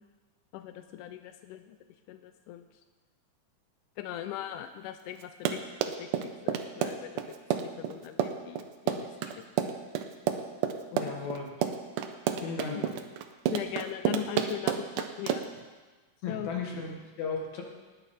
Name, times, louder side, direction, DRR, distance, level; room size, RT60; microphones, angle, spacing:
voice 1, 0.5-1.8 2.1-2.7 4.0-7.1 7.6-9.4 10.9-11.1 12.8-12.9 13.5-15.4 16.3-16.5, left 12 dB, 90° left, 8 dB, 2.2 m, -40 dB
Run, 5.2-15.6, right 9 dB, 85° right, 2.3 m, -31 dB
voice 2, 10.9-11.7 12.4-12.9 16.2-17.6, left 5 dB, 65° left, 1 dB, 2.9 m, -35 dB
19.5 x 8.4 x 4.3 m, 1.3 s
omnidirectional pair, 3.6 m